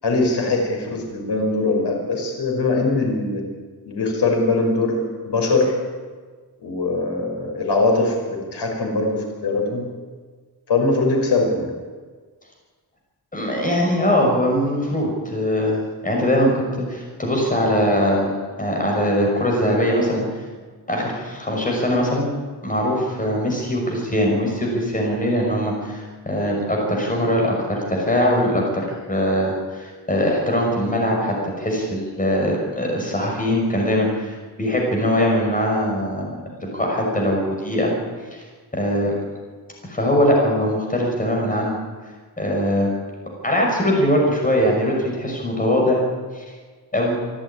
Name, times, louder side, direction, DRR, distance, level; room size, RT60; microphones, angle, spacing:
voice 1, 0.0-3.4 3.9-5.7 6.6-9.9 10.7-11.7, left 3 dB, 85° left, 1 dB, 5.5 m, -21 dB
voice 2, 13.3-16.6 16.9-18.3 18.6-20.2 20.9-22.3 22.6-36.3 36.7-37.9 38.3-38.4 38.7-39.1 39.8-41.8 42.4-42.9 43.4-46.0 46.3-46.4 46.9-47.2, equal, 20° left, -1 dB, 5.9 m, -21 dB
25.5 x 11.5 x 10.0 m, 1.5 s
wide cardioid pair, 170°, 39 cm